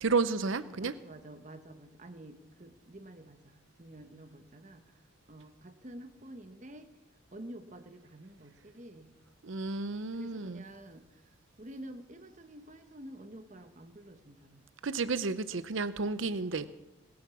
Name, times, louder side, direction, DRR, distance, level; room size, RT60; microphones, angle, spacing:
voice 1, 0.0-0.9 9.4-10.6 14.8-16.7, right 4 dB, 70° right, 14 dB, 0.7 m, -31 dB
voice 2, 0.6-4.9 5.3-6.9 7.3-9.1 10.1-14.6, right 1 dB, 35° right, 8 dB, 1.2 m, -49 dB
20.0 x 8.8 x 7.1 m, 0.99 s
head